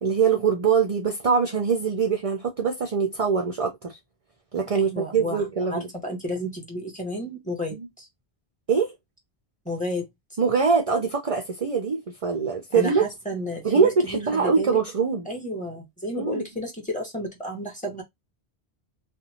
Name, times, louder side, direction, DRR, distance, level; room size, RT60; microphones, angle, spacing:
voice 1, 0.0-4.0 4.5-5.9 7.7-7.9 8.7-8.9 10.4-13.1 13.6-15.3 16.1-16.4, right 5 dB, 45° right, 0.5 m, -23 dB
voice 2, 4.7-8.1 9.6-10.1 12.7-14.8 15.2-18.0, left 1 dB, 5° left, 1.2 m, -32 dB
2.7 x 2.5 x 2.7 m
omnidirectional pair, 1.1 m